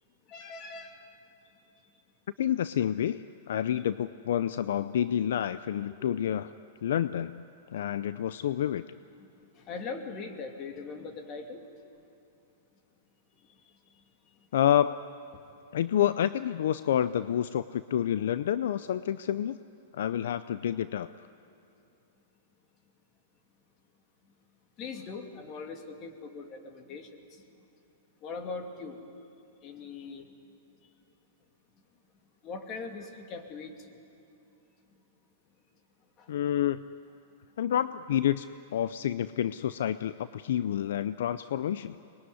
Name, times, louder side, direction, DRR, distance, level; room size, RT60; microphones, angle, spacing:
voice 1, 0.3-1.0 5.9-6.2 9.2-11.7 13.5-13.6 13.8-14.0 15.3-15.4 24.8-27.4 28.2-29.1 29.6-30.3 32.4-34.0 36.2-36.3, left 4 dB, 35° left, 4 dB, 2.7 m, -41 dB
voice 2, 2.4-6.5 6.8-7.4 7.7-8.8 14.5-15.0 15.7-19.6 19.9-21.1 36.3-36.9 37.6-38.5 38.7-42.0, left 10 dB, 75° left, 14 dB, 0.5 m, -28 dB
24.5 x 21.0 x 9.6 m, 2.7 s
hypercardioid pair, 130°, 0 cm